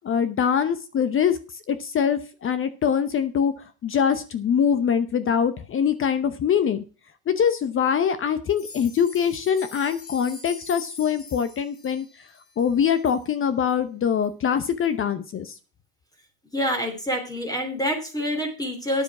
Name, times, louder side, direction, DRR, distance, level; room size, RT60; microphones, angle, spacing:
voice 1, 0.0-1.4 1.7-3.5 3.8-6.8 7.3-12.1 12.6-15.5, left 7 dB, 30° left, 13 dB, 0.8 m, -23 dB
sound 1, 8.5-13.2 13.7-13.8 14.2-14.3 14.8-14.9, left 5 dB, 80° left, 3.9 m, -43 dB
voice 2, 16.5-19.0, equal, 10° left, 4 dB, 3.0 m, -27 dB
9.8 x 7.3 x 6.0 m, 0.35 s
supercardioid pair, 105°, 45 cm